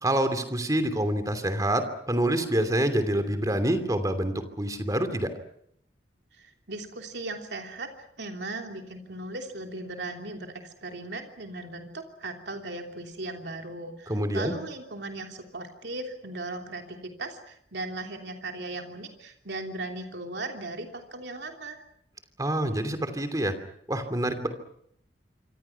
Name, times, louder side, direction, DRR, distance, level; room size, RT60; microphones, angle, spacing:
voice 1, 0.0-5.3 14.1-14.5 22.4-23.5 23.9-24.5, right 1 dB, 20° right, 9 dB, 2.9 m, -26 dB
voice 2, 6.3-21.8, right 2 dB, 70° right, 3 dB, 3.1 m, -37 dB
27.0 x 25.5 x 5.9 m, 0.68 s
head